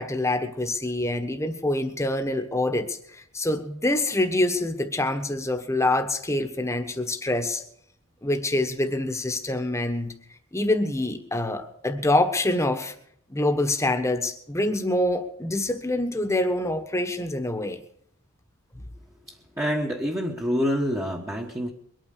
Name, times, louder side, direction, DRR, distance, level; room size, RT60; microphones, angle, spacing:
voice 1, 0.0-7.6 8.2-10.1 10.5-12.9 13.3-17.8, left 1 dB, 15° left, 7 dB, 1.3 m, -26 dB
voice 2, 19.3-21.7, equal, 15° right, -3 dB, 1.3 m, -27 dB
22.5 x 9.2 x 6.7 m, 0.68 s
head